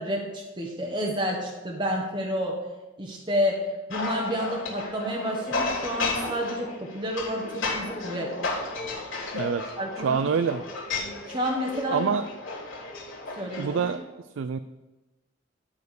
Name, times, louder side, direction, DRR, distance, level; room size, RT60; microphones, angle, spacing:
voice 1, 0.0-2.6 3.0-8.3 9.8-10.2 11.2-12.1 13.4-13.7, equal, 25° right, -2 dB, 1.2 m, -30 dB
sound 1, 3.9-14.0, left 3 dB, 70° left, 3.9 m, -33 dB
voice 2, 9.3-9.7 10.0-10.6 11.9-12.3 13.6-14.0 14.4-14.6, right 6 dB, 75° right, 12 dB, 0.4 m, -26 dB
12.5 x 4.4 x 6.9 m, 1.1 s
head